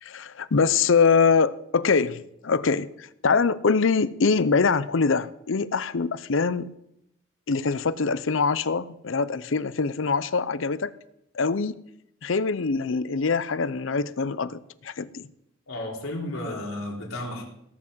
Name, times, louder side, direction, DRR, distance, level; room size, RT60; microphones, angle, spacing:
voice 1, 0.0-6.7 7.5-10.9 11.3-11.8 12.2-15.3, left 5 dB, 65° left, 0.6 m, -24 dB
voice 2, 15.7-17.4, left 1 dB, 90° left, 3.8 m, -33 dB
17.5 x 6.0 x 7.8 m
head